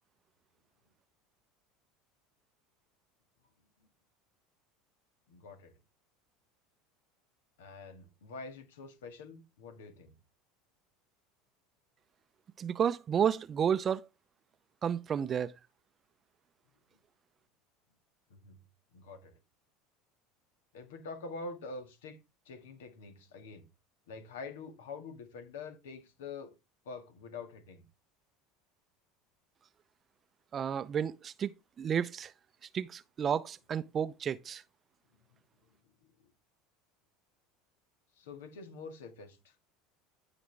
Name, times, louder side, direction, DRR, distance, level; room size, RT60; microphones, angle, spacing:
voice 1, 5.3-5.8 7.6-10.1 18.3-18.6 18.9-19.3 20.7-22.2 22.4-23.7 24.1-26.5 26.8-27.9 38.2-39.5, left 4 dB, 80° left, 1.7 m, -46 dB
voice 2, 12.6-14.1 14.8-15.5 30.5-32.3 32.6-34.6, right 8 dB, 35° right, 0.5 m, -32 dB
14.0 x 5.0 x 3.3 m
hypercardioid pair, 85°, 0 cm